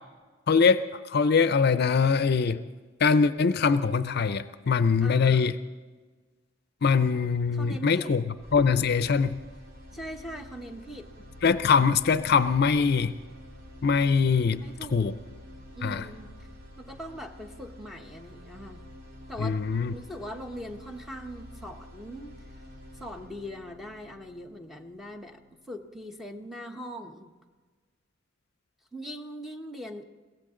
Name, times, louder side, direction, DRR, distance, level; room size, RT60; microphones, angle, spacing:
voice 1, 0.5-2.6 3.0-5.5 6.8-8.2 8.5-9.4 11.4-13.1 13.8-14.6 14.9-15.1 15.8-16.1 19.4-19.9, left 5 dB, 55° left, 12 dB, 0.5 m, -23 dB
voice 2, 5.0-5.5 7.5-8.3 9.9-11.1 14.6-15.2 15.7-16.3 16.8-18.8 19.3-19.6 19.9-22.3 23.0-25.4 25.7-27.3 28.9-30.0, equal, ahead, 4 dB, 1.1 m, -41 dB
sound 1, 8.4-26.4, left 1 dB, 55° right, 2.5 m, -48 dB
22.5 x 17.0 x 3.8 m, 1.4 s
head